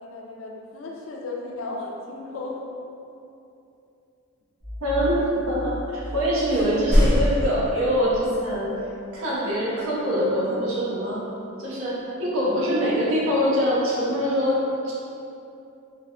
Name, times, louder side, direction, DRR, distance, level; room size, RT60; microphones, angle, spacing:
voice 1, 0.0-2.6, left 3 dB, 70° left, -1 dB, 0.4 m, -35 dB
sound 1, 4.6-7.3, left 1 dB, 20° right, 0.9 m, -35 dB
voice 2, 4.8-8.7 9.1-11.2 11.6-14.9, equal, 80° right, -6 dB, 0.7 m, -24 dB
sound 2, 6.0-6.2 6.5-8.5, equal, ahead, 0.6 m, -23 dB
3.2 x 2.1 x 2.3 m, 2.7 s
head